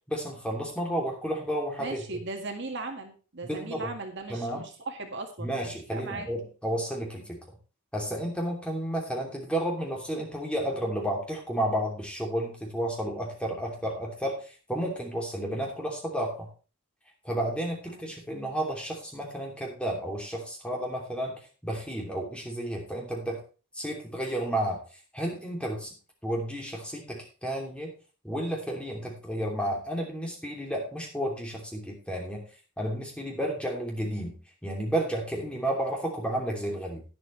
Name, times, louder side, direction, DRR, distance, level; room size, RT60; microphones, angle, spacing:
voice 1, 0.1-2.0 3.4-3.9 4.3-4.7 5.4-7.6 7.9-16.5 17.2-23.4 23.7-24.8 25.1-26.0 26.2-27.9 28.2-32.5 32.8-37.0, right 1 dB, 5° left, -1 dB, 2.9 m, -32 dB
voice 2, 1.8-6.3 17.9-18.1, right 3 dB, 60° right, 4 dB, 1.9 m, -38 dB
11.5 x 10.5 x 3.3 m, 0.35 s
head